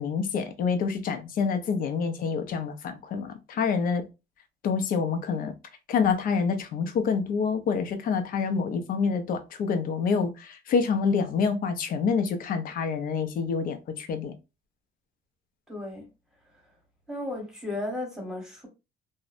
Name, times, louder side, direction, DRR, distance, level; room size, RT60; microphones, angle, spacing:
voice 1, 0.0-4.0 4.6-5.5 5.9-14.3, left 5 dB, 55° left, 0.6 m, -27 dB
voice 2, 15.7-16.1 17.1-18.7, left 2 dB, 5° right, 1.0 m, -34 dB
2.6 x 2.1 x 2.4 m
cardioid pair, 110°, 17 cm